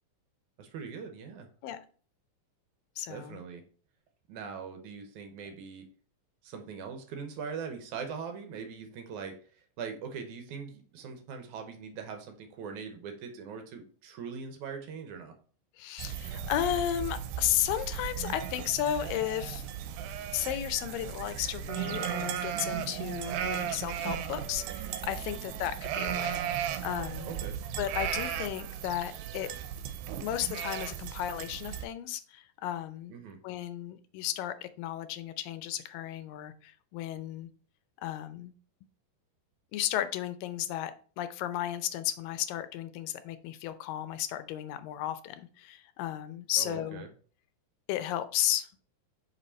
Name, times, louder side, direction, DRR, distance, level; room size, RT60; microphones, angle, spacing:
voice 1, 0.6-1.5 3.1-3.6 4.3-5.9 6.4-15.3 25.3-25.6 27.3-27.6 33.1-33.4 46.6-47.1, right 6 dB, 70° right, 5 dB, 2.0 m, -41 dB
voice 2, 3.0-3.4 15.8-19.7 20.3-27.3 27.8-29.5 30.2-33.1 33.4-37.5 38.0-38.5 39.7-40.9 41.2-47.1 47.9-48.7, left 12 dB, 80° left, 11 dB, 2.2 m, -34 dB
sound 1, 16.0-31.8, right 10 dB, 90° right, 2.4 m, -36 dB
5.8 x 5.5 x 4.1 m, 0.42 s
omnidirectional pair, 4.1 m